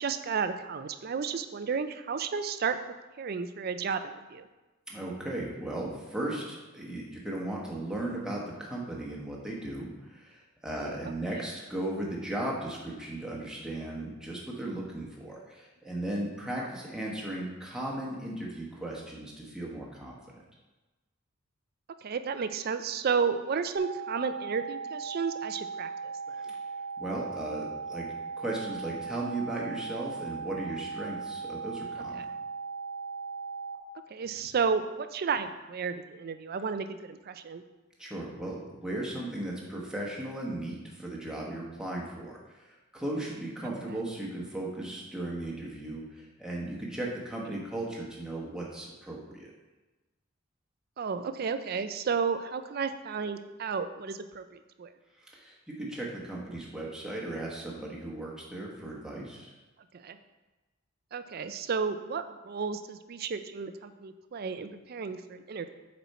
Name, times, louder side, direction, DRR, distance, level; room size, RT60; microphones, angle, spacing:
voice 1, 0.0-2.8 3.2-4.5 11.4-11.5 22.0-26.4 32.1-32.3 34.1-37.6 51.0-54.9 59.9-60.2 61.1-65.7, right 5 dB, 50° right, 10 dB, 0.4 m, -32 dB
voice 2, 4.9-20.2 26.5-26.6 27.0-28.1 28.4-32.3 34.4-34.5 38.0-49.5 55.2-59.5, right 1 dB, 5° right, -4 dB, 1.1 m, -36 dB
sound 1, 23.8-33.8, right 5 dB, 70° right, 1.0 m, -38 dB
7.0 x 4.3 x 4.2 m, 1.1 s
head